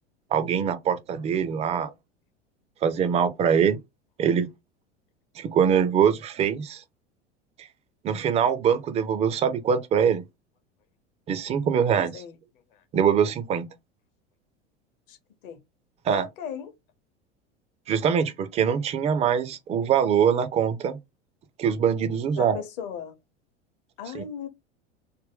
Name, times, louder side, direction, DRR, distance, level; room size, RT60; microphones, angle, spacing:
voice 1, 0.3-1.9 2.8-3.8 4.2-4.5 5.4-6.8 7.6-7.7 8.0-10.2 11.3-12.2 12.9-13.7 16.0-16.3 17.9-21.0 21.6-22.6 24.1-24.3, right 7 dB, 20° right, 0.4 m, -23 dB
voice 2, 16.1-16.7 22.4-23.1 24.0-24.5, left 8 dB, 50° left, 0.9 m, -37 dB
3.5 x 2.1 x 3.6 m
figure-of-eight pair, 80°, 35 cm